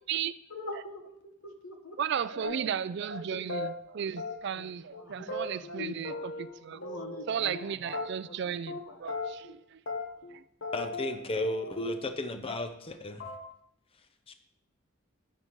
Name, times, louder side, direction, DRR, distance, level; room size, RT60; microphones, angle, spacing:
voice 1, 0.5-2.0 2.3-2.8 4.1-4.2 4.6-4.7 5.0-6.2 6.7-8.0 8.3-8.5 8.9-9.0, left 3 dB, 85° left, 1.2 m, -44 dB
voice 2, 2.0-6.8 7.3-9.8 10.3-10.4, right 8 dB, 55° right, 0.3 m, -35 dB
sound 1, 2.4-2.8 3.1-3.2 3.5-3.7 4.2-4.7 4.9-5.0 5.3-6.5 6.8-7.6 7.9-8.4 8.7-8.8 9.1-9.6 9.9-10.4 10.6-12.2 12.5-12.9 13.2-13.4, left 3 dB, 60° left, 1.2 m, -38 dB
voice 3, 10.7-13.2 14.3-14.4, left 1 dB, 25° left, 0.6 m, -34 dB
10.5 x 8.4 x 3.1 m
head